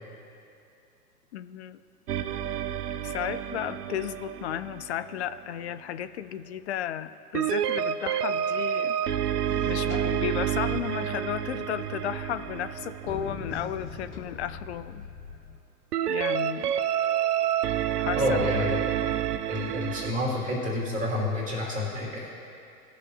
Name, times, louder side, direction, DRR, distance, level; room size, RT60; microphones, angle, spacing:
voice 1, 1.3-1.8 3.0-9.0 9.7-15.1 16.1-16.7 18.0-18.5 19.3-19.4, left 10 dB, 45° left, 13 dB, 0.5 m, -34 dB
sound 1, 2.1-5.4 7.3-13.9 15.9-20.1, right 10 dB, 80° right, 0.6 m, -29 dB
sound 2, 9.5-15.6, left 5 dB, 30° left, 0.9 m, -43 dB
voice 2, 18.1-18.8 19.5-22.3, left 1 dB, 15° right, -5 dB, 2.7 m, -29 dB
19.0 x 6.8 x 2.8 m, 2.6 s
hypercardioid pair, 120°, 46 cm